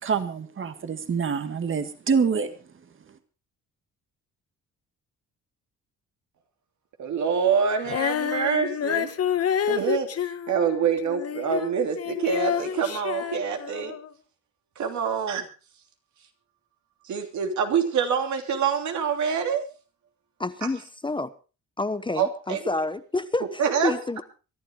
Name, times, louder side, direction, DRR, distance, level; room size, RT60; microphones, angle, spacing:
voice 1, 0.0-2.5, right 6 dB, 40° right, 1.9 m, -26 dB
voice 2, 7.0-9.1 9.7-13.9 14.8-15.5 17.0-19.6 22.1-22.6 23.6-23.9, right 7 dB, 70° right, 3.1 m, -26 dB
Female singing, 7.8-14.1, left 9 dB, 55° left, 1.2 m, -28 dB
voice 3, 20.4-21.3 21.8-24.2, left 2 dB, 15° left, 0.9 m, -29 dB
23.5 x 11.5 x 3.7 m
cardioid pair, 90°, 30 cm